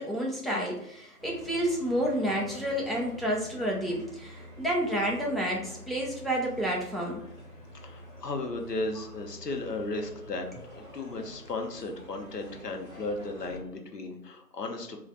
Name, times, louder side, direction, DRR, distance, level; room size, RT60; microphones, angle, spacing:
voice 1, 0.0-7.2, equal, ahead, -3 dB, 0.4 m, -30 dB
sound 1, 1.2-13.6, equal, 25° left, 1.1 m, -47 dB
voice 2, 7.7-15.0, left 2 dB, 80° left, 3 dB, 0.9 m, -35 dB
3.1 x 2.4 x 3.8 m, 0.78 s
figure-of-eight pair, 160°, 48 cm